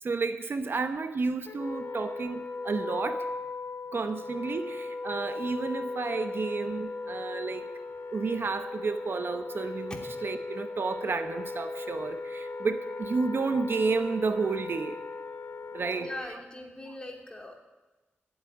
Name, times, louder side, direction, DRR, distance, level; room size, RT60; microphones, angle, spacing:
voice 1, 0.0-3.3 3.9-7.7 8.1-15.0 15.7-16.4, right 4 dB, 60° right, 9 dB, 0.8 m, -31 dB
Wind instrument woodwind instrument, 1.5-16.3, left 3 dB, 60° left, 1.2 m, -37 dB
voice 2, 16.0-17.6, left 1 dB, 20° left, 1 dB, 2.8 m, -40 dB
13.5 x 8.1 x 9.9 m, 1.2 s
wide cardioid pair, 80°, 4 cm